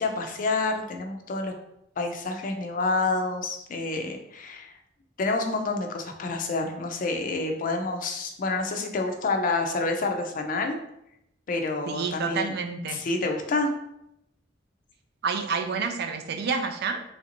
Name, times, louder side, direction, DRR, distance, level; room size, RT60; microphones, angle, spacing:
voice 1, 0.0-1.5 2.0-4.7 5.2-10.8 11.5-12.5 12.9-13.7, left 3 dB, 45° left, 4 dB, 0.4 m, -28 dB
voice 2, 11.9-13.0 15.2-17.0, right 5 dB, 60° right, 6 dB, 0.4 m, -29 dB
3.2 x 2.5 x 2.9 m, 0.80 s
head